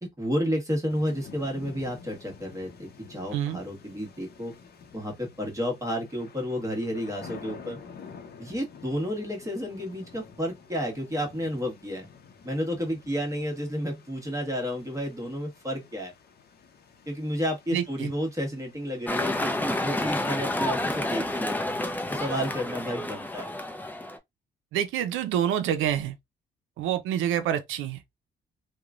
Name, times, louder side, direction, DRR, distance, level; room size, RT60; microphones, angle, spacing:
voice 1, 0.0-4.5 4.9-7.8 8.4-12.1 12.4-16.1 17.1-21.7 22.1-23.5, equal, 15° right, 1.3 m, -31 dB
sound 1, 0.9-19.8, left 5 dB, 50° left, 0.7 m, -49 dB
voice 2, 17.7-18.1 24.7-26.2 26.8-28.0, right 10 dB, 90° right, 0.5 m, -27 dB
sound 2, 19.1-24.2, left 1 dB, 10° left, 0.6 m, -29 dB
3.0 x 2.2 x 2.4 m
cardioid pair, 90°, 20 cm